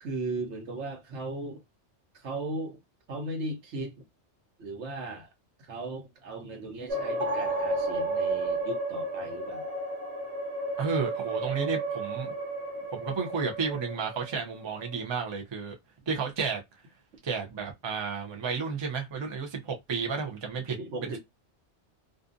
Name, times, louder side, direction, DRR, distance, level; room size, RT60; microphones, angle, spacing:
voice 1, 0.0-1.6 2.1-2.8 3.1-3.9 4.6-5.3 5.6-9.7 20.8-21.2, right 2 dB, 80° right, 1.1 m, -37 dB
sound 1, 6.9-15.0, right 2 dB, 60° right, 0.9 m, -32 dB
voice 2, 10.8-12.3 12.9-15.7 16.1-16.6 17.2-20.8 21.0-21.2, right 5 dB, 35° right, 0.5 m, -32 dB
2.5 x 2.4 x 2.5 m
omnidirectional pair, 1.2 m